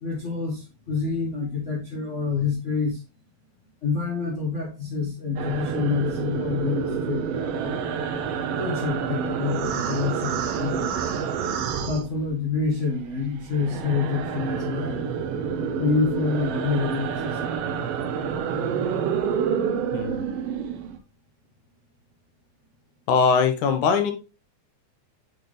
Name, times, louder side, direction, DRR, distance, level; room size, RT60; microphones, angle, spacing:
voice 1, 0.0-3.0 3.8-8.0 8.6-11.1 11.9-15.0 15.8-17.7, left 4 dB, 65° left, -3 dB, 0.7 m, -27 dB
sound 1, 5.4-12.7 13.0-21.0, right 7 dB, 75° right, 1.4 m, -28 dB
voice 2, 19.9-20.2 23.1-24.1, left 6 dB, 90° left, 6 dB, 2.5 m, -21 dB
8.3 x 4.0 x 3.3 m, 0.29 s
omnidirectional pair, 3.4 m